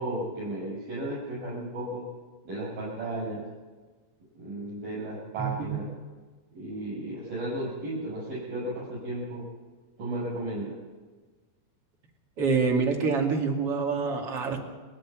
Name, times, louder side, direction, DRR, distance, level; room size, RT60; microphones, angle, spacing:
voice 1, 0.0-2.0 2.5-3.4 4.4-5.8 6.5-9.4 10.0-10.7, right 1 dB, 60° right, -7 dB, 9.6 m, -34 dB
voice 2, 5.4-5.8 12.4-14.6, right 5 dB, 40° right, 1 dB, 3.0 m, -26 dB
29.5 x 10.0 x 8.9 m, 1.4 s
omnidirectional pair, 4.5 m